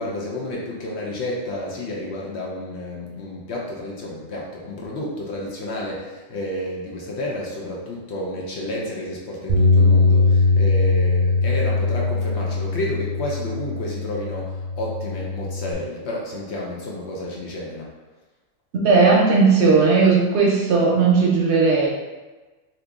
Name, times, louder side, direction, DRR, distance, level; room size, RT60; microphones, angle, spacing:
voice 1, 0.0-17.9, left 1 dB, 60° left, -3 dB, 0.8 m, -31 dB
Bass guitar, 9.5-15.7, left 3 dB, 30° right, 0.7 m, -20 dB
voice 2, 18.7-21.9, right 4 dB, 60° right, -3 dB, 0.9 m, -16 dB
2.8 x 2.5 x 3.5 m, 1.2 s
omnidirectional pair, 1.4 m